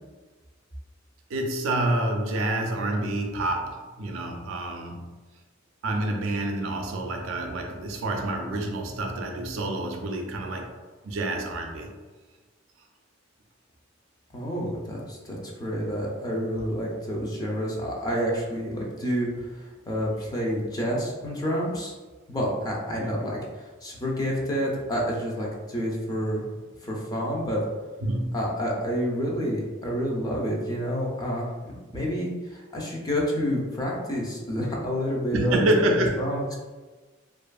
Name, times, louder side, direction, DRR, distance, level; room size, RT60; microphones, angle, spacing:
voice 1, 1.3-5.2 5.8-10.8 11.0-11.9 16.6-16.7 22.9-23.1 28.0-28.4 31.9-32.0 35.3-36.3, right 1 dB, 75° right, 2 dB, 0.4 m, -28 dB
voice 2, 14.3-21.9 22.3-26.4 26.8-27.6 28.3-35.9 36.2-36.6, equal, 20° left, -3 dB, 0.5 m, -29 dB
2.6 x 2.4 x 2.2 m, 1.3 s
head